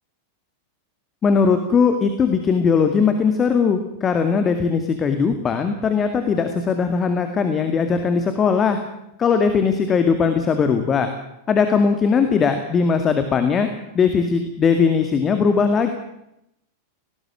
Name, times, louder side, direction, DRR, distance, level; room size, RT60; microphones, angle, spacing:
voice 1, 1.2-8.8 9.2-11.1 11.5-13.7 13.9-15.9, left 5 dB, 25° left, 8 dB, 2.1 m, -19 dB
19.0 x 18.5 x 7.5 m, 0.81 s
figure-of-eight pair, 90°, 0 cm